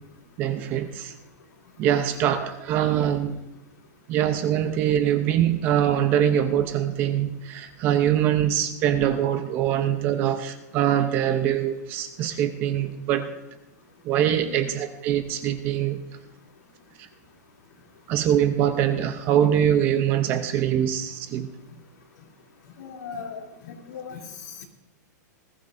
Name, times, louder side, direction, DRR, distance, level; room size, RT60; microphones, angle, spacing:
voice 1, 0.4-1.1 1.8-3.4 4.1-13.3 14.0-16.0 18.1-21.5, right 10 dB, 20° right, 9 dB, 0.6 m, -23 dB
voice 2, 22.8-24.2 24.4-24.6, left 6 dB, 80° left, 1 dB, 2.9 m, -38 dB
20.0 x 15.0 x 2.6 m, 0.98 s
supercardioid pair, 180°, 10 cm